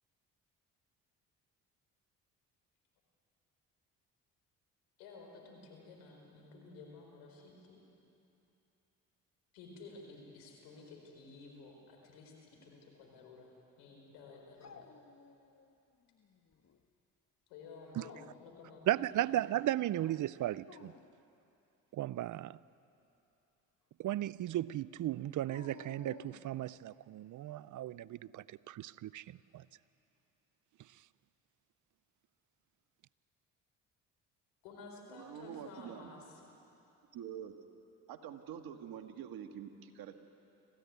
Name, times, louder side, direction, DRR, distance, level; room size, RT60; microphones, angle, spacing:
voice 1, 5.0-7.8 9.5-14.9 17.5-19.3 34.6-36.5, left 3 dB, 85° left, 4.3 m, -53 dB
Dog, 14.6-15.7 16.1-16.8 17.8-18.6 20.5-21.2 25.4-26.8, left 5 dB, 45° left, 1.6 m, -55 dB
voice 2, 18.9-20.9 21.9-22.6 24.0-29.6, right 13 dB, 55° right, 0.5 m, -36 dB
voice 3, 35.1-36.1 37.1-37.5 38.1-40.2, right 9 dB, 70° right, 1.7 m, -46 dB
26.0 x 15.0 x 9.4 m
hypercardioid pair, 55°, 38 cm